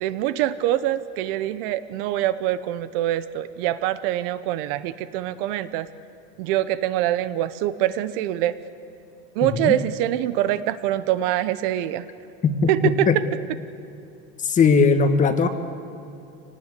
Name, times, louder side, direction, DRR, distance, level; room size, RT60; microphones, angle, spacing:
voice 1, 0.0-5.9 6.4-8.5 9.3-12.0 12.7-13.1, right 13 dB, 60° right, 14 dB, 0.9 m, -24 dB
voice 2, 9.4-9.8 12.4-12.7 13.1-13.2 14.4-15.5, left 5 dB, 25° left, 8 dB, 1.5 m, -18 dB
24.0 x 18.5 x 8.3 m, 2.6 s
supercardioid pair, 130°, 31 cm